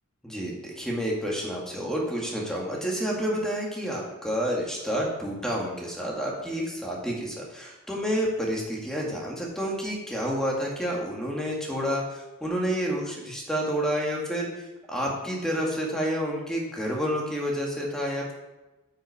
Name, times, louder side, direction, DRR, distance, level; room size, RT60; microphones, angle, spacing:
voice 1, 0.2-18.3, equal, 5° left, -3 dB, 1.8 m, -29 dB
8.9 x 5.6 x 4.9 m, 1.1 s
head